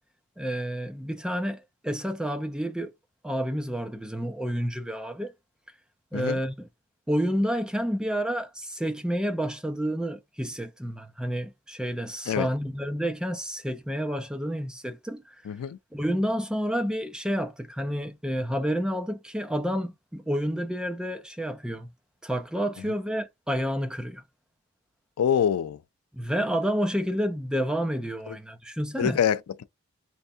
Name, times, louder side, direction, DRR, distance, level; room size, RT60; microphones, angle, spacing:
voice 1, 0.4-2.9 3.2-5.3 6.1-6.7 7.1-15.3 15.9-21.9 22.2-24.2 26.1-29.2, equal, 5° right, 0.4 m, -29 dB
voice 2, 15.5-15.8 25.2-25.8 28.3-28.4 29.0-29.6, left 8 dB, 85° left, 0.3 m, -25 dB
3.4 x 3.3 x 2.6 m
head